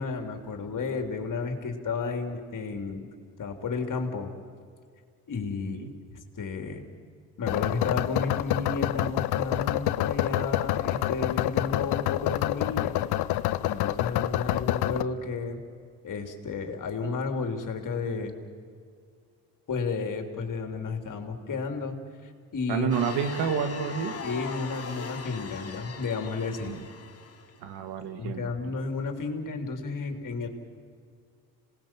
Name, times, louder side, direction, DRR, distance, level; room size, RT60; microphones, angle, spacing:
voice 1, 0.0-3.1 3.4-4.3 5.3-6.8 7.4-12.9 13.6-15.6 16.0-18.4 19.7-22.0 22.2-22.9 24.2-26.7 28.2-30.5, left 4 dB, 55° left, 5 dB, 3.2 m, -32 dB
sound 1, 7.5-15.0, left 15 dB, 80° left, 0.8 m, -27 dB
voice 2, 22.7-24.2 26.6-26.8 27.6-28.5, right 7 dB, 85° right, 8 dB, 1.7 m, -29 dB
sound 2, 22.9-27.6, left 4 dB, 40° left, 2.2 m, -40 dB
27.0 x 19.0 x 7.5 m, 2.1 s
supercardioid pair, 75°, 38 cm